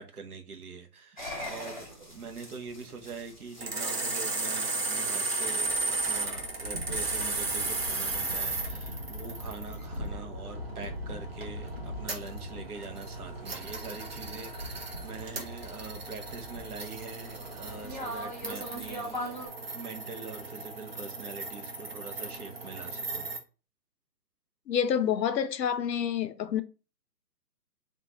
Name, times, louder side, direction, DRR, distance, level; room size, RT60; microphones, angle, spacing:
voice 1, 0.0-19.4 19.7-23.3, right 4 dB, 60° right, 0.9 m, -44 dB
sound 1, 1.2-19.5, left 1 dB, 30° left, 0.4 m, -41 dB
sound 2, 3.6-23.4, right 3 dB, 40° right, 0.5 m, -35 dB
voice 2, 24.7-26.6, left 8 dB, 80° left, 0.5 m, -28 dB
3.6 x 2.4 x 2.8 m
figure-of-eight pair, 150°, 49 cm